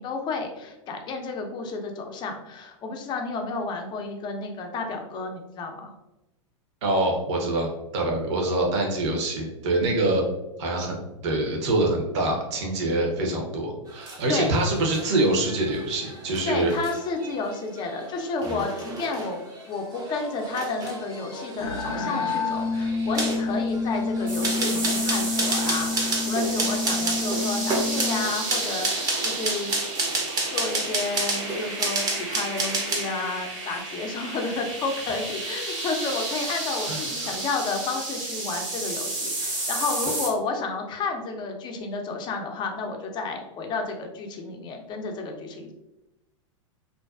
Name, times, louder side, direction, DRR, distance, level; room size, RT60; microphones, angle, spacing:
voice 1, 0.0-5.9 14.3-14.5 16.5-19.4 19.7-29.8 30.5-45.7, left 4 dB, 30° left, 3 dB, 0.4 m, -31 dB
voice 2, 6.8-10.2 10.6-16.7 18.5-18.6 36.9-37.3, right 2 dB, 60° right, 0 dB, 0.8 m, -25 dB
sound 1, 13.9-33.2 33.5-33.8, right 2 dB, 25° right, 0.6 m, -31 dB
sound 2, 21.6-28.2, left 3 dB, 85° left, 0.4 m, -28 dB
sound 3, 24.3-40.3, right 2 dB, 75° right, 1.2 m, -32 dB
2.5 x 2.2 x 2.3 m, 0.96 s
hypercardioid pair, 115°, 16 cm